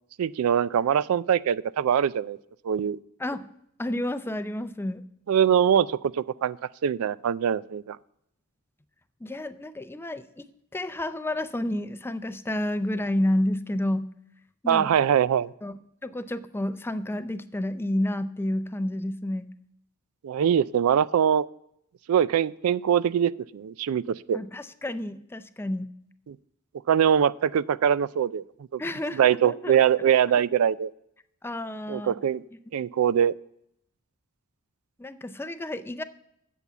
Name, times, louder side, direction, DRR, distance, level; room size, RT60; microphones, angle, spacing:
voice 1, 0.2-2.4 2.6-3.0 5.3-6.6 6.8-8.0 14.7-15.5 20.2-21.5 22.1-24.4 26.3-26.4 26.9-28.4 28.7-28.8 29.1-30.9 31.9-32.4 32.7-33.3, right 8 dB, 75° right, 19 dB, 0.3 m, -23 dB
voice 2, 3.8-5.0 9.2-10.5 10.7-14.1 14.6-14.9 15.6-15.7 16.0-19.5 24.3-25.9 28.8-29.8 31.4-32.2 35.0-36.0, left 1 dB, 10° left, 11 dB, 0.4 m, -30 dB
8.3 x 7.0 x 8.0 m, 0.75 s
head